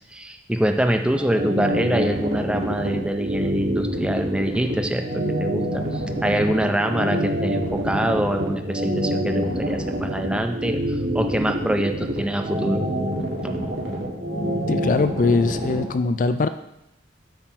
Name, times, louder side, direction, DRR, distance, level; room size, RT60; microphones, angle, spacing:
voice 1, 0.1-12.8 13.5-13.7, right 1 dB, 5° right, 5 dB, 0.5 m, -25 dB
sound 1, 1.1-15.8, equal, 65° right, 2.2 m, -26 dB
voice 2, 14.7-16.5, left 3 dB, 45° left, 10 dB, 0.3 m, -21 dB
8.6 x 6.0 x 4.5 m, 0.87 s
head